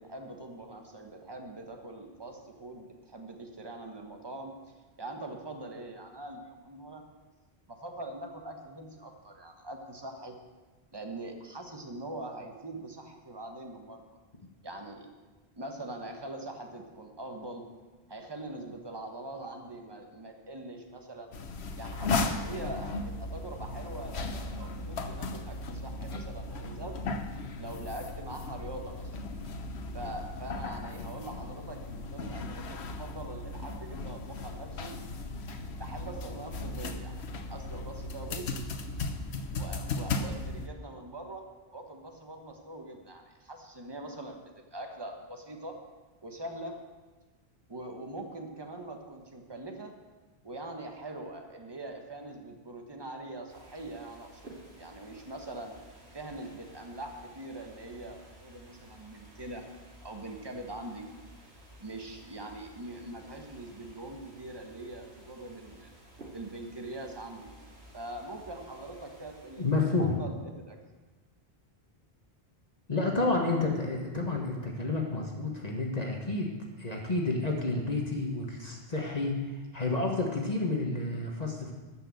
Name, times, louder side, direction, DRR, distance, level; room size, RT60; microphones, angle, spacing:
voice 1, 0.0-4.6 5.0-7.0 7.7-10.4 10.9-14.0 14.6-15.1 15.6-17.7 18.1-21.3 21.8-27.0 27.6-29.1 29.9-35.0 35.8-38.5 39.5-45.8 46.2-46.8 47.7-50.0 50.4-54.5 54.8-55.8 56.1-59.7 60.0-61.1 61.8-65.9 66.3-67.5 67.9-69.7 70.0-70.8, right 2 dB, 25° right, 3 dB, 1.3 m, -43 dB
sound 1, 21.3-40.7, left 3 dB, 85° left, 1.2 m, -36 dB
sound 2, 53.5-70.3, right 1 dB, 85° right, 2.5 m, -54 dB
voice 2, 69.6-70.2 72.9-81.7, left 2 dB, 40° left, 0 dB, 1.5 m, -30 dB
13.5 x 5.9 x 7.7 m, 1.2 s
omnidirectional pair, 1.1 m